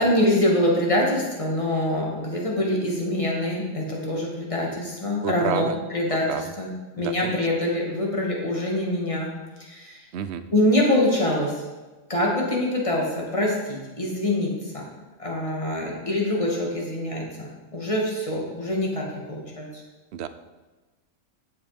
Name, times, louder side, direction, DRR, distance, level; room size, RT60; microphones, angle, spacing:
voice 1, 0.0-6.3 6.6-9.3 9.6-10.0 10.5-11.6 12.1-14.8 15.2-19.8, left 1 dB, 25° left, -2 dB, 2.3 m, -25 dB
voice 2, 5.2-5.8 6.3-6.5 7.0-7.4 10.1-10.4 20.1-20.3, right 9 dB, 60° right, 10 dB, 0.9 m, -29 dB
10.5 x 7.2 x 5.1 m, 1.2 s
omnidirectional pair, 1.3 m